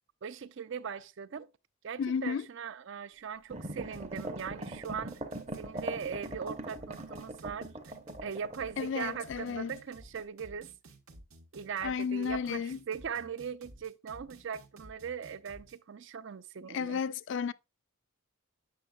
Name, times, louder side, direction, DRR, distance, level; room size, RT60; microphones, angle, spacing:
voice 1, 0.2-1.5 1.8-5.2 5.6-7.7 8.2-10.7 11.5-17.0, right 7 dB, 55° right, 0.4 m, -40 dB
voice 2, 2.0-2.5 8.8-9.7 11.8-12.8 16.7-17.5, left 6 dB, 55° left, 0.3 m, -33 dB
sound 1, 3.5-9.8 10.2-10.3, right 1 dB, 30° right, 0.7 m, -41 dB
sound 2, 3.8-15.8, right 1 dB, 75° right, 1.2 m, -54 dB
8.4 x 6.2 x 2.3 m
head